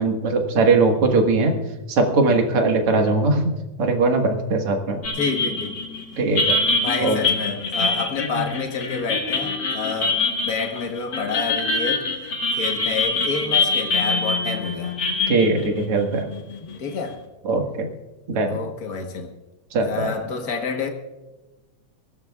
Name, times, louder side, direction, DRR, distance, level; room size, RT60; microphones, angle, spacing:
voice 1, 0.0-1.6 1.9-3.4 3.8-5.0 6.2-6.6 7.0-7.2 15.3-16.3 17.5-17.9 18.3-18.6 19.7-20.1, right 3 dB, 50° right, 2.3 m, -20 dB
sound 1, 5.0-16.8, left 3 dB, 40° left, 2.1 m, -24 dB
voice 2, 5.1-5.8 6.8-12.1 12.5-15.0 16.6-17.2 18.5-19.3 19.8-20.9, left 5 dB, 75° left, 0.8 m, -29 dB
23.0 x 16.5 x 2.4 m
omnidirectional pair, 3.6 m